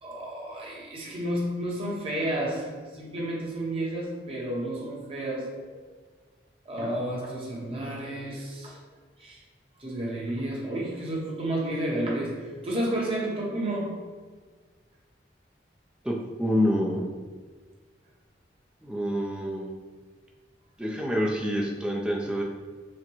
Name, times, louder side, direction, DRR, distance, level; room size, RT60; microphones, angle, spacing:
voice 1, 0.0-5.8 6.6-8.8 9.2-9.4 9.8-14.1, right 1 dB, 30° right, -3 dB, 0.8 m, -31 dB
voice 2, 16.0-17.0 18.8-19.7 20.8-22.4, equal, 5° right, -1 dB, 0.4 m, -27 dB
5.8 x 2.1 x 3.0 m, 1.5 s
head